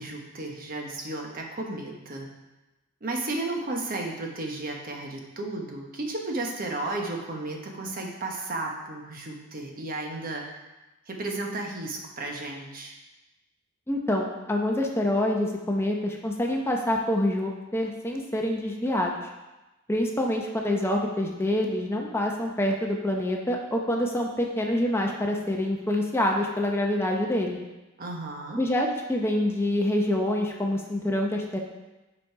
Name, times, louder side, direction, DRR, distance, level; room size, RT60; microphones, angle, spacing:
voice 1, 0.0-2.3 3.0-10.6 11.1-13.0 28.0-28.6, right 2 dB, 45° right, 1 dB, 1.2 m, -33 dB
voice 2, 13.9-19.1 19.9-27.6 28.6-31.6, left 1 dB, 10° left, 0 dB, 0.7 m, -26 dB
8.2 x 5.4 x 4.6 m, 1.1 s
head